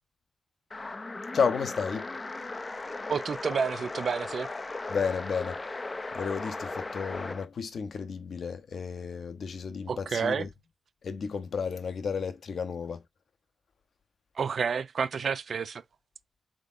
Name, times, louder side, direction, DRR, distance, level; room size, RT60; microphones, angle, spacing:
sound 1, 0.7-7.5, left 3 dB, 35° left, 0.5 m, -37 dB
voice 1, 1.3-2.1 4.9-5.6 6.1-10.5 11.0-13.0, left 6 dB, 70° left, 0.8 m, -32 dB
voice 2, 3.1-4.5 9.9-10.5 14.4-15.8, right 6 dB, 65° right, 0.4 m, -30 dB
3.8 x 3.4 x 2.5 m
supercardioid pair, 45°, 0 cm